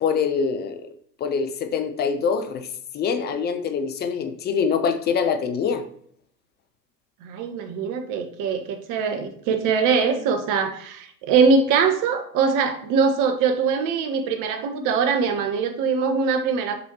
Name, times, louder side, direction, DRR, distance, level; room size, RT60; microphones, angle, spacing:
voice 1, 0.0-0.9 1.2-2.7 2.9-5.8, left 6 dB, 20° left, 9 dB, 0.7 m, -24 dB
voice 2, 7.2-16.7, right 5 dB, 40° right, 7 dB, 1.3 m, -22 dB
7.9 x 5.5 x 2.9 m, 0.62 s
hypercardioid pair, 100°, 50 cm